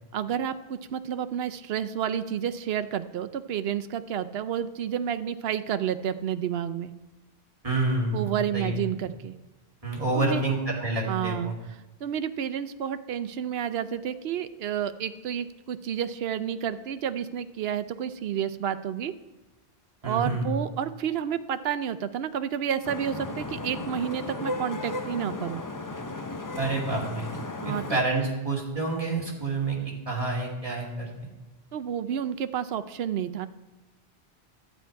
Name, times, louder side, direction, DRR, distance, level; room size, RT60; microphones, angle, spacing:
voice 1, 0.1-6.9 8.1-9.4 10.1-10.4 11.1-11.5 12.0-19.1 20.0-25.6 27.6-28.0 31.7-33.5, right 9 dB, 75° right, 12 dB, 0.8 m, -30 dB
voice 2, 7.6-8.3 8.5-8.7 9.8-11.5 20.0-20.5 26.6-27.3 27.6-29.8 30.1-31.1, right 2 dB, 35° right, -3 dB, 2.5 m, -28 dB
Vehicle horn car horn honking / Traffic noise roadway noise, 22.8-28.0, left 2 dB, 25° left, 0.5 m, -35 dB
12.0 x 9.0 x 4.6 m, 1.1 s
omnidirectional pair, 1.1 m